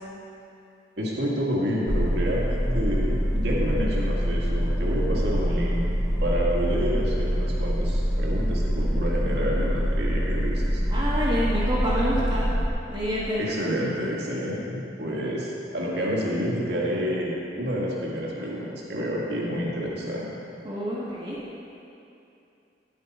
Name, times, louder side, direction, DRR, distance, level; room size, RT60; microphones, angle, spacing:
voice 1, 1.0-5.8 6.2-10.8 13.4-20.3, equal, 65° right, -4 dB, 1.9 m, -29 dB
sound 1, 1.9-12.7, equal, ahead, 0.6 m, -25 dB
voice 2, 10.9-12.5 12.9-13.4 20.6-21.4, equal, 25° right, -9 dB, 1.4 m, -27 dB
11.0 x 8.7 x 4.2 m, 2.8 s
head